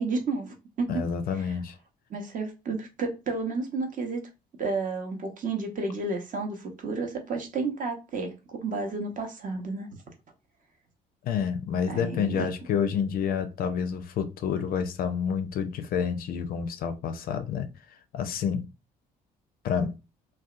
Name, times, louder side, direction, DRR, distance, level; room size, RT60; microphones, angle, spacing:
voice 1, 0.0-1.0 1.3-1.5 2.1-4.3 4.6-9.9 11.9-12.5, right 3 dB, 40° right, 0.8 m, -31 dB
voice 2, 0.9-1.8 11.2-17.7 18.1-18.7 19.6-19.9, left 7 dB, 45° left, 0.4 m, -28 dB
2.7 x 2.1 x 2.4 m
figure-of-eight pair, 50°, 20 cm